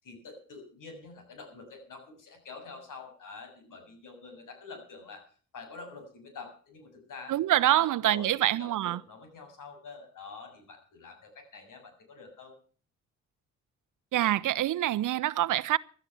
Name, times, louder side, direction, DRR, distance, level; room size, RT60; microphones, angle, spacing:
voice 1, 0.0-5.3 5.5-12.6, left 4 dB, 60° left, 7.3 m, -47 dB
voice 2, 7.3-9.0 14.1-15.8, right 13 dB, 60° right, 0.8 m, -26 dB
16.0 x 12.5 x 5.9 m
hypercardioid pair, 55°, 35 cm